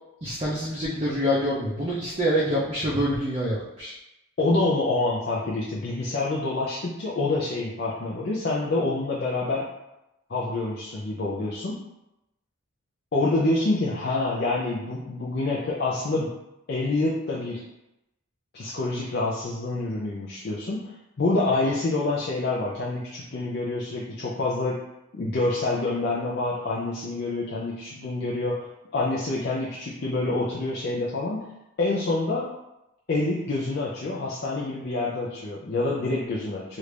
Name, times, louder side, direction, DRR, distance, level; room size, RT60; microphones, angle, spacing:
voice 1, 0.2-4.0, equal, 30° right, -7 dB, 0.5 m, -26 dB
voice 2, 4.4-9.7 10.3-11.8 13.1-16.4 16.7-17.6 18.5-24.8 25.1-31.5 31.8-32.5 33.1-36.8, left 2 dB, 50° left, -5 dB, 0.4 m, -27 dB
3.2 x 2.5 x 3.2 m, 0.89 s
head